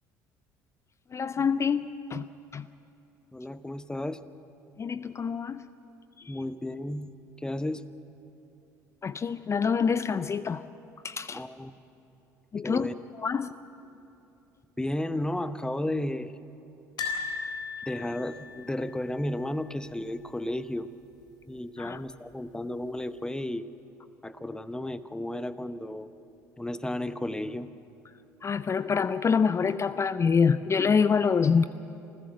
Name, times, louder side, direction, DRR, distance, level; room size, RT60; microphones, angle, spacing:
voice 1, 1.1-2.2 2.5-2.7 4.8-5.7 9.0-10.6 11.0-11.4 12.5-12.9 13.2-13.5 21.8-22.0 28.4-31.7, left 6 dB, 30° left, 14 dB, 0.5 m, -26 dB
voice 2, 3.3-4.2 6.3-7.9 11.3-11.7 12.6-12.9 14.8-16.3 17.9-20.9 21.5-23.7 24.2-26.1 26.6-27.7, left 1 dB, 10° left, 13 dB, 0.9 m, -33 dB
sound 1, 17.0-20.0 20.3-20.5 20.8-20.9 22.1-22.6 23.1-23.2, left 5 dB, 50° left, 3.7 m, -37 dB
27.0 x 15.5 x 7.6 m, 2.9 s
hypercardioid pair, 60°, 9 cm